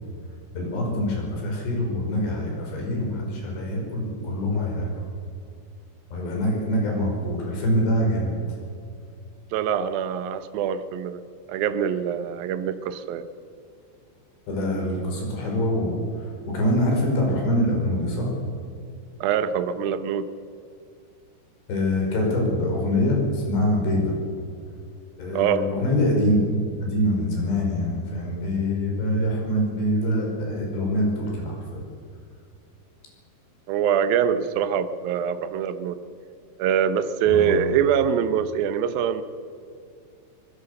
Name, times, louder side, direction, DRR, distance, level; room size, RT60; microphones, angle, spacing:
voice 1, 0.5-4.9 6.1-8.4 14.5-16.0 16.5-18.3 21.7-24.1 25.2-31.9 37.3-37.5, left 1 dB, 70° left, 0 dB, 7.3 m, -24 dB
voice 2, 9.5-11.2 11.5-13.3 19.2-20.3 25.3-25.7 33.7-36.0 36.6-39.2, right 8 dB, 70° right, 11 dB, 2.4 m, -24 dB
24.0 x 19.5 x 6.7 m, 2.4 s
omnidirectional pair, 5.2 m